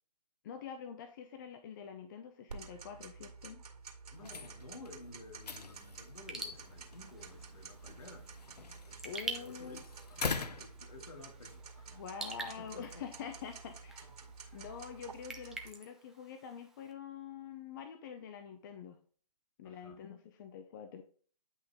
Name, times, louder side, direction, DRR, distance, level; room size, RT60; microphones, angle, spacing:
voice 1, 0.4-3.6 9.0-9.8 11.9-14.1 14.5-19.0 19.6-21.0, left 7 dB, 30° left, 0.7 m, -46 dB
Tick-tock, 2.5-15.7, right 5 dB, 65° right, 2.2 m, -51 dB
sound 1, 4.1-11.6, left 4 dB, 75° left, 0.9 m, -44 dB
voice 2, 4.1-8.3 8.8-12.0 12.6-13.1 14.0-14.6 19.6-20.0, left 2 dB, 60° left, 2.5 m, -53 dB
Raindrop / Drip, 6.2-16.9, right 2 dB, ahead, 0.4 m, -48 dB
9.5 x 5.8 x 3.6 m
figure-of-eight pair, 135°, 21 cm